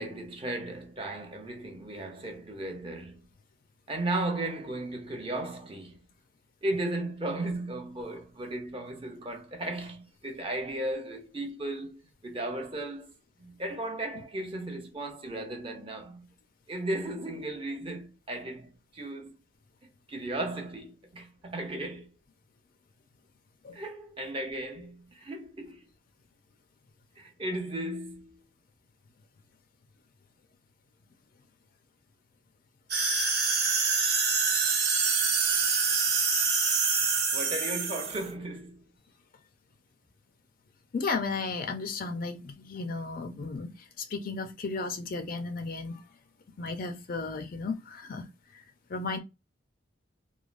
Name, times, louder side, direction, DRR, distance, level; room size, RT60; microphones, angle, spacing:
voice 1, 0.0-3.2 3.9-6.0 6.6-13.1 13.4-16.3 16.7-19.3 20.1-22.1 23.7-25.8 27.2-28.4 37.3-38.8, right 1 dB, 25° right, 0.5 m, -35 dB
sound 1, 32.9-38.3, right 5 dB, 55° right, 0.9 m, -26 dB
voice 2, 40.9-46.0 46.6-48.6 48.9-49.2, left 4 dB, 45° left, 0.4 m, -34 dB
3.1 x 2.3 x 2.4 m
head